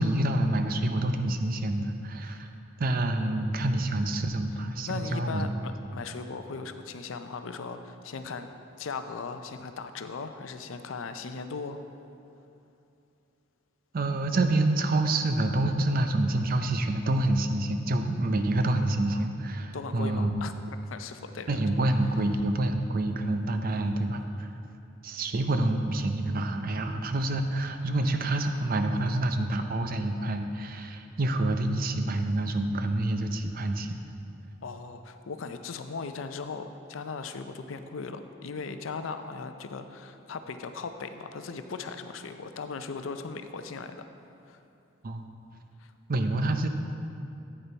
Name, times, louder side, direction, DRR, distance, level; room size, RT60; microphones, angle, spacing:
voice 1, 0.0-2.5 2.8-5.5 13.9-20.4 21.5-24.5 25.0-34.0 45.0-45.2 46.1-46.7, right 1 dB, 45° right, 6 dB, 0.5 m, -27 dB
voice 2, 4.8-8.5 8.8-11.8 19.7-20.5 20.8-21.6 34.6-44.0 44.5-44.6 45.8-45.9, left 4 dB, 80° left, 9 dB, 0.5 m, -38 dB
8.9 x 6.8 x 4.4 m, 2.7 s
head